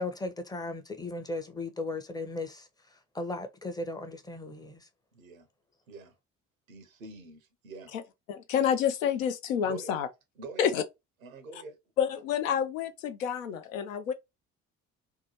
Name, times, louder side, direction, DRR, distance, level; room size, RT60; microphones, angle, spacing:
voice 1, 0.0-2.7 3.1-4.9, left 2 dB, 10° left, 0.6 m, -36 dB
voice 2, 5.1-5.5 5.9-6.1 6.7-7.9 9.6-10.0 10.4-10.7 11.2-11.7, right 3 dB, 85° right, 0.6 m, -45 dB
voice 3, 8.3-10.1 10.6-10.8 11.5-11.6 12.0-14.1, left 8 dB, 80° left, 0.5 m, -29 dB
2.7 x 2.2 x 2.8 m
figure-of-eight pair, 50°, 40 cm